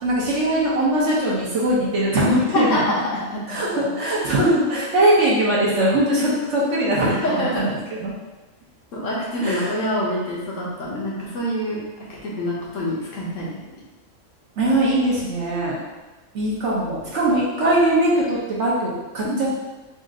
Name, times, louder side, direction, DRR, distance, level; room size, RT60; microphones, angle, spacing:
voice 1, 0.0-2.9 3.5-7.7 8.0-8.1 9.4-9.7 14.6-15.8 16.3-19.5, right 1 dB, 65° right, -6 dB, 1.2 m, -21 dB
voice 2, 2.5-3.9 7.1-7.7 8.9-11.8 12.2-13.6 19.2-19.5, left 1 dB, 75° left, -5 dB, 1.4 m, -26 dB
4.2 x 2.5 x 3.7 m, 1.2 s
omnidirectional pair, 1.3 m